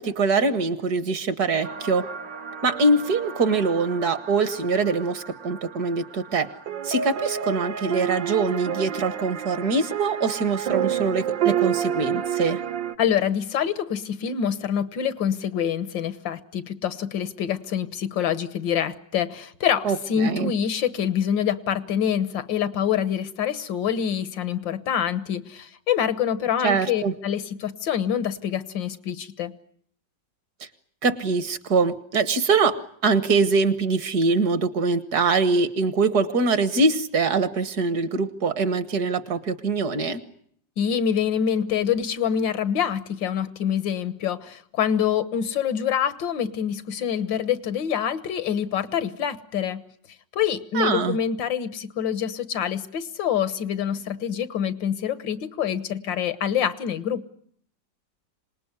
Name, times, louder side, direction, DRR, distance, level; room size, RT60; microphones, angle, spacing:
voice 1, 0.0-2.0 2.6-6.5 6.8-12.6 19.8-20.5 26.6-27.1 31.0-32.8 33.0-40.2 50.7-51.2, right 4 dB, 60° right, 13 dB, 1.8 m, -23 dB
sound 1, 1.6-13.0, right 9 dB, 80° right, 1.9 m, -30 dB
voice 2, 13.0-29.5 40.8-49.8 50.3-57.3, left 8 dB, 85° left, 14 dB, 2.0 m, -26 dB
26.5 x 19.5 x 9.6 m, 0.66 s
omnidirectional pair, 1.9 m